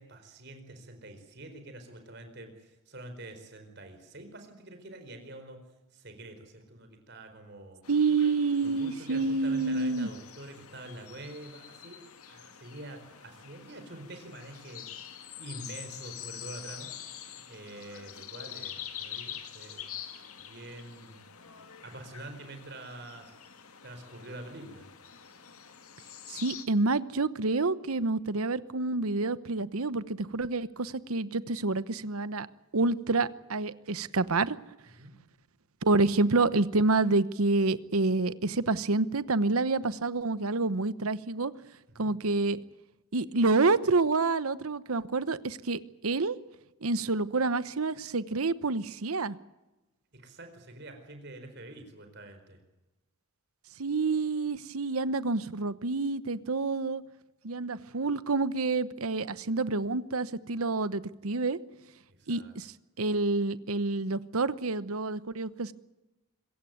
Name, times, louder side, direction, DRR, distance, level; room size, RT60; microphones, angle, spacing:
voice 1, 0.0-5.6 5.9-7.8 8.6-16.9 17.2-19.9 20.5-21.2 21.8-23.3 23.8-24.9 35.0-35.1 41.9-42.1 50.1-52.6 62.1-62.5, right 1 dB, 50° right, 7 dB, 4.6 m, -46 dB
sound 1, 7.8-26.6, left 9 dB, 85° left, 2.2 m, -46 dB
voice 2, 7.9-10.1 26.3-32.5 32.7-34.6 35.8-41.5 42.0-42.6 43.1-46.4 46.8-49.4 53.8-57.0 57.4-61.6 62.3-62.7 63.0-65.7, right 3 dB, 85° right, 16 dB, 1.0 m, -28 dB
25.5 x 16.0 x 9.4 m, 1.0 s
head